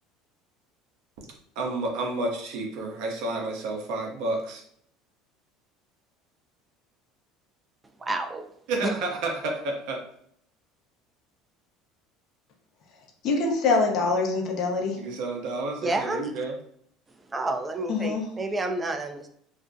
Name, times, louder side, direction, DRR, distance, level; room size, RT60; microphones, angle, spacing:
voice 1, 1.6-4.6 8.7-10.0 15.0-16.5, right 2 dB, 65° right, 1 dB, 0.6 m, -30 dB
voice 2, 8.0-8.5 8.8-9.0 15.8-16.3 17.3-19.3, right 2 dB, 25° right, 6 dB, 0.3 m, -29 dB
voice 3, 13.2-15.0 17.9-18.2, left 3 dB, 55° left, 1 dB, 0.6 m, -24 dB
2.5 x 2.1 x 2.5 m, 0.67 s
hypercardioid pair, 75°, 0 cm